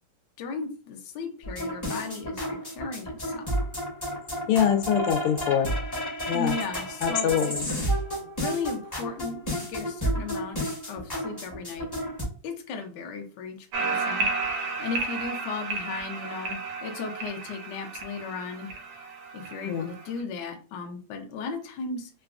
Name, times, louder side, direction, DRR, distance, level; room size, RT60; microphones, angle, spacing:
voice 1, 0.4-3.5 6.3-7.8 8.4-10.6 10.9-11.9 12.4-18.7 19.3-22.1, left 4 dB, 70° left, 4 dB, 1.1 m, -36 dB
sound 1, 1.4-12.2, equal, 15° left, 0.6 m, -31 dB
voice 2, 4.5-5.7 6.3-6.5 7.0-7.7 19.7-19.9, left 9 dB, 85° left, 7 dB, 1.5 m, -24 dB
sound 2, 13.7-20.2, right 3 dB, 90° right, 1.7 m, -32 dB
3.8 x 2.3 x 2.4 m, 0.37 s
omnidirectional pair, 2.4 m